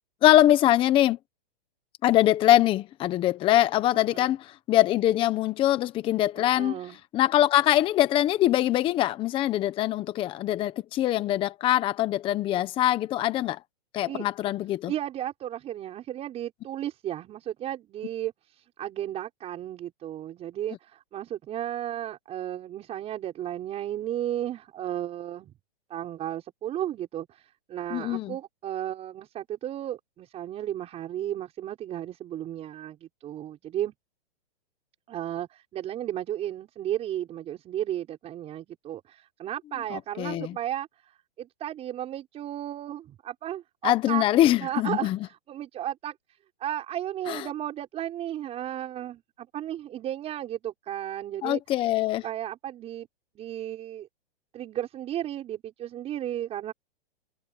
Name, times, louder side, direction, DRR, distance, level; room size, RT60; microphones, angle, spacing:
voice 1, 0.2-1.2 2.0-6.7 7.1-13.6 13.9-14.9 27.9-28.3 39.9-40.5 43.8-45.2 47.3-47.4 51.4-52.2, left 13 dB, 20° left, 1.0 m, -23 dB
voice 2, 3.9-4.4 6.4-7.0 14.1-14.3 14.9-25.5 25.9-33.9 35.1-44.2 44.6-51.6 52.2-53.1 53.4-54.1 54.5-56.7, right 11 dB, 20° right, 6.0 m, -34 dB
hypercardioid pair, 155°, 29 cm